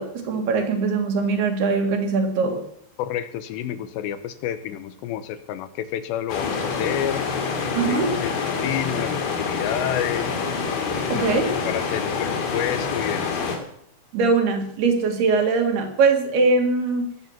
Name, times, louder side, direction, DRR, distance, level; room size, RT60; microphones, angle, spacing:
voice 1, 0.0-2.6 7.7-8.1 11.1-11.5 14.1-17.1, right 4 dB, 65° right, 4 dB, 4.0 m, -21 dB
voice 2, 3.0-7.2 7.9-10.4 11.1-13.4, left 11 dB, 80° left, 12 dB, 3.1 m, -29 dB
sound 1, 6.3-13.6, left 5 dB, 65° left, 4.3 m, -26 dB
20.0 x 8.2 x 7.3 m, 0.70 s
omnidirectional pair, 5.1 m